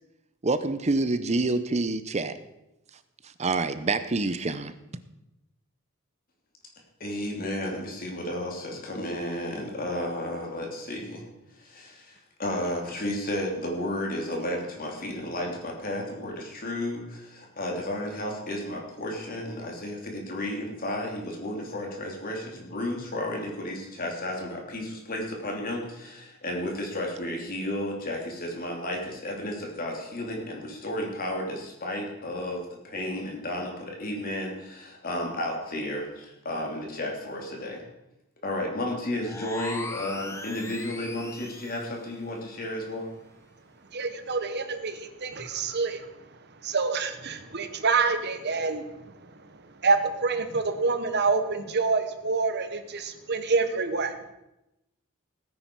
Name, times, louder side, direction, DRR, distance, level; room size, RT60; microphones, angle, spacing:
voice 1, 0.4-2.3 3.4-4.7, right 3 dB, 30° right, 0.7 m, -26 dB
voice 2, 7.0-11.2 11.5-37.8 38.4-43.1, left 1 dB, 40° left, 2.9 m, -33 dB
sound 1, 39.2-41.9, left 2 dB, 15° left, 1.0 m, -38 dB
voice 3, 43.9-46.0 46.6-48.8 49.8-54.1, right 4 dB, 50° right, 1.2 m, -27 dB
17.0 x 9.8 x 4.6 m
head